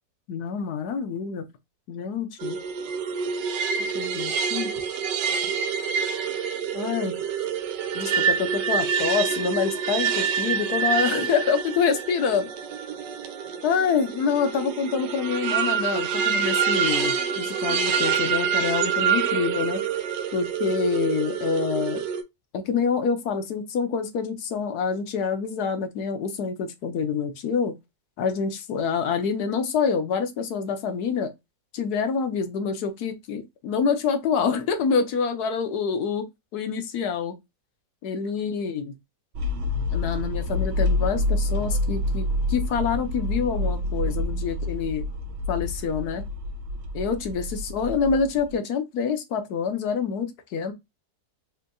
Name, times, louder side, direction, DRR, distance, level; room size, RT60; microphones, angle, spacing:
voice 1, 0.3-1.4 1.9-2.6 3.9-4.7 6.7-7.1 7.9-12.5 13.6-19.8 20.3-22.0 22.5-27.7 28.2-31.3 31.7-36.3 36.5-37.4 38.0-38.9 39.9-45.0 45.5-46.2 46.9-50.7, left 6 dB, 65° left, 1.2 m, -26 dB
sound 1, 2.4-22.2, right 7 dB, 80° right, 1.3 m, -26 dB
sound 2, 39.3-48.5, left 1 dB, 60° right, 0.9 m, -27 dB
4.4 x 2.8 x 2.6 m
omnidirectional pair, 1.9 m